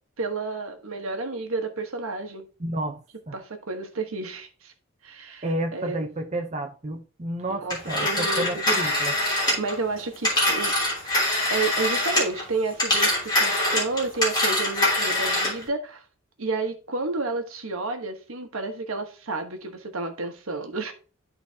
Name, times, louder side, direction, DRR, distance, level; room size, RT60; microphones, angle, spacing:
voice 1, 0.2-2.5 3.3-4.7 5.0-5.4 5.7-6.0 7.5-8.6 9.6-10.8 11.0-11.2 11.5-16.0 16.4-20.9, right 3 dB, 85° right, 1.2 m, -31 dB
voice 2, 2.6-3.0 3.3-3.4 5.4-9.2, right 1 dB, 35° right, 0.7 m, -30 dB
Telephone, 7.7-12.4 12.7-15.6, left 1 dB, 20° left, 3.0 m, -24 dB
12.0 x 4.0 x 2.8 m
head